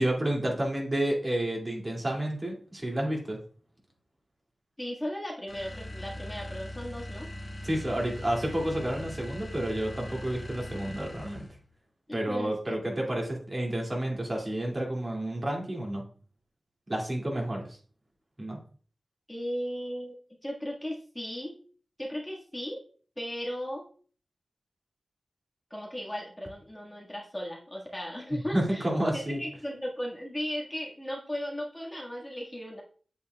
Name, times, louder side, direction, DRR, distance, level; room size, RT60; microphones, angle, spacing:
voice 1, 0.0-3.4 7.6-11.5 12.1-16.0 16.9-17.8 18.4-18.6 28.3-29.4, right 1 dB, 35° right, -1 dB, 2.3 m, -30 dB
voice 2, 4.8-7.3 12.1-13.1 19.3-20.2 20.4-21.6 22.0-22.8 23.2-23.9 25.7-28.9 29.1-32.8, equal, 15° left, -2 dB, 1.6 m, -36 dB
sound 1, 5.5-11.6, left 1 dB, 40° left, 1.7 m, -40 dB
8.6 x 7.0 x 2.3 m, 0.43 s
wide cardioid pair, 70°, 0 cm